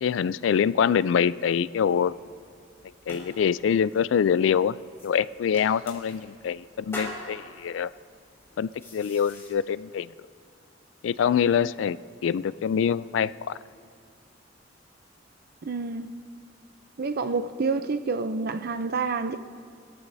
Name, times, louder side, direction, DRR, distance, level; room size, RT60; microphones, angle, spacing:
voice 1, 0.0-2.1 3.1-4.7 5.0-7.9 8.6-10.1 11.0-12.0 12.2-13.6, left 7 dB, 80° left, 0.3 m, -25 dB
sound 1, 1.9-9.5, left 1 dB, 15° left, 4.0 m, -44 dB
voice 2, 15.6-16.1 17.0-19.4, right 4 dB, 55° right, 0.5 m, -28 dB
23.5 x 14.5 x 2.7 m
head